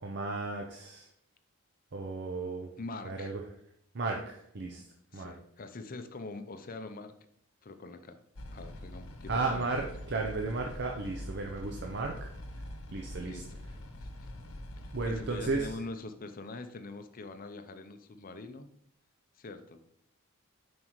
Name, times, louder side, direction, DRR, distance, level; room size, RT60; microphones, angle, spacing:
voice 1, 0.0-1.1 1.9-2.7 3.0-3.4 3.9-4.8 5.1-5.3 9.3-12.3 12.9-13.4 14.9-15.7, right 3 dB, 50° right, 2 dB, 0.6 m, -34 dB
voice 2, 2.8-3.4 5.1-7.1 7.6-8.2 8.5-9.9 13.2-13.6 14.0-14.3 14.8-18.7 19.4-19.8, left 3 dB, 40° left, 9 dB, 0.6 m, -44 dB
sound 1, 8.4-15.8, left 1 dB, 80° left, 0.9 m, -44 dB
7.5 x 5.3 x 3.1 m, 0.69 s
head